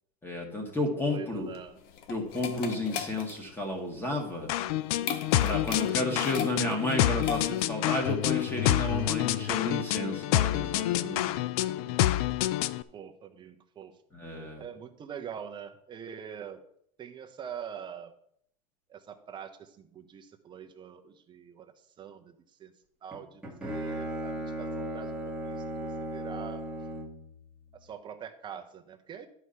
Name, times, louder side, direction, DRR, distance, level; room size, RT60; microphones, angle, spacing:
voice 1, 0.2-1.5 2.1-4.5 5.4-11.4 11.7-12.0 14.1-14.6, left 2 dB, 10° left, 1 dB, 1.9 m, -32 dB
voice 2, 1.0-1.8 12.9-14.0 14.6-16.6 17.0-18.1 18.9-22.7 23.0-26.7 27.8-29.3, right 8 dB, 25° right, 5 dB, 1.0 m, -44 dB
sound 1, 1.3-7.8, left 7 dB, 45° left, 1.0 m, -38 dB
sound 2, 4.5-12.8, left 14 dB, 70° left, 0.5 m, -28 dB
Bowed string instrument, 23.1-27.3, right 1 dB, 5° right, 1.8 m, -36 dB
11.5 x 4.8 x 5.8 m, 0.68 s
supercardioid pair, 150°, 20 cm